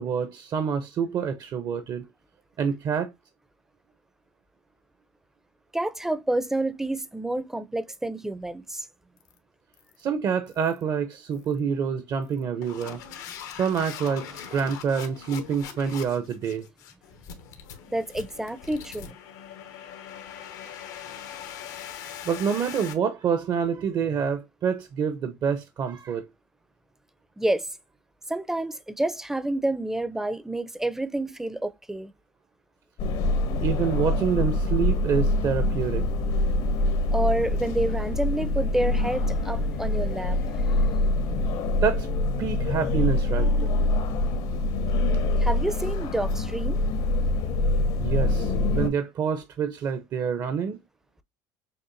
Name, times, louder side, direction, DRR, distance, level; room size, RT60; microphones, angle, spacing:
voice 1, 0.0-2.0 2.6-3.1 10.0-13.0 13.5-16.7 22.3-26.2 33.6-36.1 41.8-42.1 42.4-43.8 48.0-50.8, right 7 dB, 45° right, 0.7 m, -27 dB
voice 2, 5.7-8.9 17.9-19.2 27.4-27.7 28.3-32.1 37.1-40.8 45.4-46.8, right 1 dB, 5° right, 0.5 m, -29 dB
sound 1, 9.2-9.4 9.7-10.0 10.5-10.8 11.3-11.6 12.2-22.9, left 9 dB, 90° left, 1.2 m, -41 dB
sound 2, 33.0-48.9, left 2 dB, 70° left, 0.9 m, -25 dB
6.6 x 2.5 x 2.5 m
supercardioid pair, 100°, 9 cm